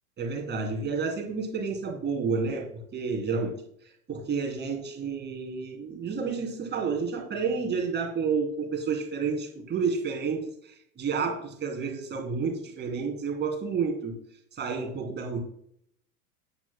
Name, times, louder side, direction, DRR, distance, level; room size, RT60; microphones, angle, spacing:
voice 1, 0.2-3.6 4.1-14.1 14.5-15.4, right 5 dB, 25° right, 1 dB, 3.1 m, -30 dB
13.5 x 10.0 x 2.2 m, 0.68 s
figure-of-eight pair, 85°, 44 cm